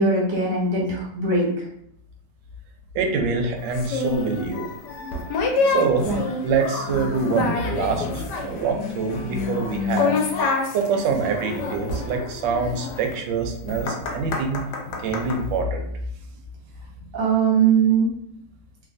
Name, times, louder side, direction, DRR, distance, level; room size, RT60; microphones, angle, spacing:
voice 1, 0.0-1.5 6.0-6.2 17.1-18.1, right 5 dB, 45° right, -4 dB, 0.7 m, -20 dB
voice 2, 2.9-4.7 5.6-10.5 10.7-14.6 15.0-15.9, right 4 dB, 80° right, 4 dB, 1.2 m, -25 dB
sound 1, 3.7-15.4, left 4 dB, 75° left, 1.1 m, -27 dB
3.2 x 2.2 x 2.5 m, 0.71 s
omnidirectional pair, 2.0 m